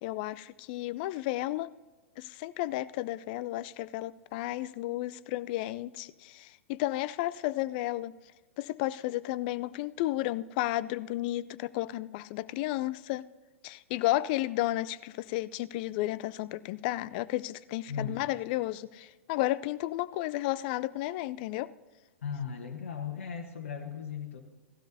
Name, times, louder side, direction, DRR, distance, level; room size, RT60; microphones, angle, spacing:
voice 1, 0.0-1.7 2.2-8.1 8.6-13.2 13.6-21.7, left 16 dB, 40° left, 17 dB, 0.4 m, -32 dB
voice 2, 17.9-18.2 22.2-24.4, left 6 dB, 65° left, 2 dB, 1.3 m, -37 dB
17.5 x 13.0 x 2.7 m, 1.3 s
figure-of-eight pair, 105°, 7 cm